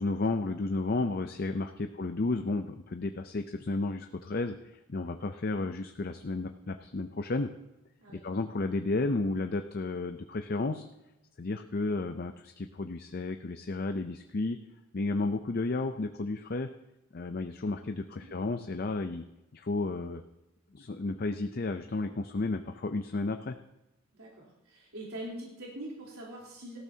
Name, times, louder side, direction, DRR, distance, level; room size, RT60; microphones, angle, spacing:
voice 1, 0.0-7.5 8.1-10.8 11.4-14.6 14.9-16.7 17.1-19.2 19.5-20.2 20.7-23.6, left 3 dB, 45° left, 7 dB, 0.5 m, -32 dB
voice 2, 24.1-26.8, right 1 dB, 90° right, -5 dB, 3.6 m, -43 dB
18.0 x 14.5 x 2.8 m, 0.97 s
head